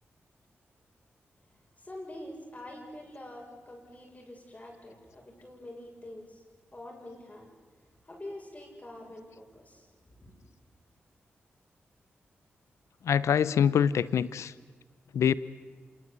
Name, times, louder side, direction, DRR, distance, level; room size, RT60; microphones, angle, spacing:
voice 1, 1.8-6.4 6.7-7.5 8.0-10.4, left 1 dB, 30° left, 0 dB, 6.9 m, -46 dB
voice 2, 13.0-14.5 15.1-15.3, left 8 dB, 80° left, 18 dB, 0.7 m, -24 dB
26.5 x 21.0 x 8.2 m, 1.5 s
supercardioid pair, 45°, 5 cm